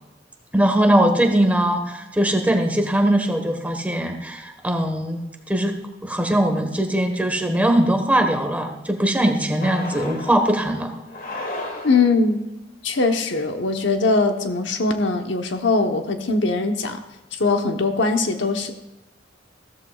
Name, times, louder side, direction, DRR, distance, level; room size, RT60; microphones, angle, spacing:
voice 1, 0.5-5.2 5.5-10.9, right 1 dB, 10° right, 4 dB, 1.3 m, -20 dB
sound 1, 9.6-10.5 11.1-12.3, left 2 dB, 50° left, 2.1 m, -33 dB
voice 2, 11.8-12.4 12.8-17.0 17.3-18.7, left 3 dB, 70° left, 5 dB, 1.0 m, -21 dB
15.0 x 13.5 x 2.4 m, 0.99 s
head